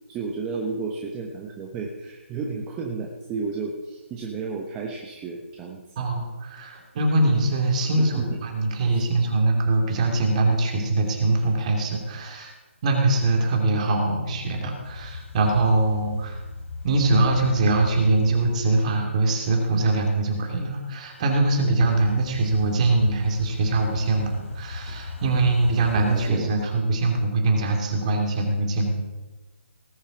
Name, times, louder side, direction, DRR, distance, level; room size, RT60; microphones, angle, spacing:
voice 1, 0.1-5.8 8.0-8.4 8.9-9.0 25.9-26.5, right 4 dB, 15° right, 0 dB, 1.0 m, -32 dB
voice 2, 6.0-12.5 12.8-16.4 16.8-28.9, right 2 dB, 30° right, 2 dB, 2.7 m, -22 dB
sound 1, 14.8-18.6 21.8-26.3, left 3 dB, 85° left, 3.0 m, -37 dB
19.0 x 7.0 x 6.0 m, 1.2 s
hypercardioid pair, 160°, 7 cm